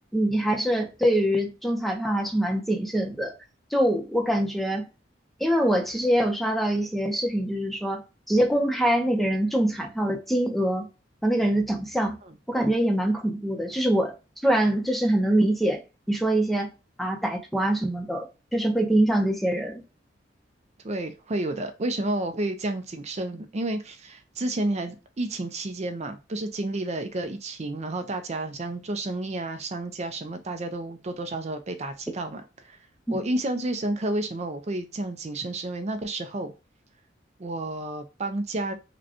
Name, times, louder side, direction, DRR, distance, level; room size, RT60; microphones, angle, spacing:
voice 1, 0.1-3.3 3.7-4.8 5.4-8.0 8.3-10.9 11.2-12.2 12.5-14.1 14.4-15.8 16.1-16.7 17.0-19.8 33.1-33.2, right 1 dB, ahead, 0.7 m, -24 dB
voice 2, 20.8-32.8 33.1-36.5 37.4-38.7, right 2 dB, 35° right, 0.5 m, -31 dB
5.0 x 2.2 x 2.8 m
head